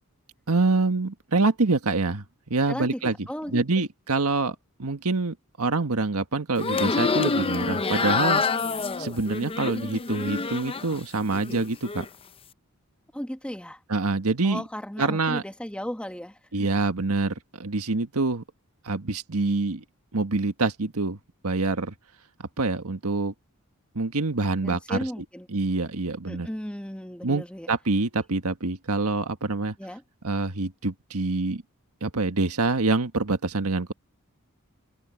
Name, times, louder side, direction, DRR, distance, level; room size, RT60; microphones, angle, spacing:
voice 1, 0.5-2.2 2.5-3.1 3.5-8.4 9.0-12.0 13.9-14.6 15.0-15.4 16.5-18.4 18.8-19.8 20.1-21.2 21.4-21.9 22.4-23.3 23.9-25.0 25.5-26.5 27.2-29.7 30.2-31.6 32.0-33.9, right 3 dB, 85° right, 1.5 m, -26 dB
voice 2, 2.7-3.6 13.1-13.8 14.4-16.4 24.6-25.5 26.3-27.7 29.8-30.0, equal, 5° left, 1.5 m, -35 dB
sound 1, 6.6-11.0 11.3-12.1, left 4 dB, 25° left, 0.6 m, -27 dB
head